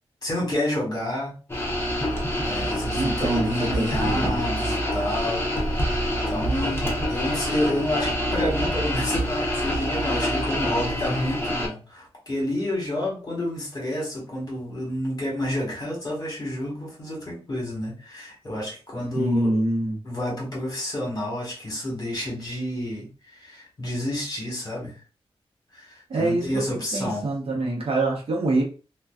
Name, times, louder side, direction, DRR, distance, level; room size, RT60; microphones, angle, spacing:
voice 1, 0.2-1.4 2.4-19.5 20.0-25.0 25.7-27.2, left 1 dB, 40° left, -3 dB, 1.3 m, -29 dB
sound 1, 1.5-11.7, equal, 20° left, 0.7 m, -26 dB
voice 2, 3.0-4.4 19.2-20.0 26.1-28.6, right 2 dB, 65° right, -1 dB, 0.8 m, -25 dB
2.5 x 2.3 x 2.3 m, 0.35 s
wide cardioid pair, 115°, 11 cm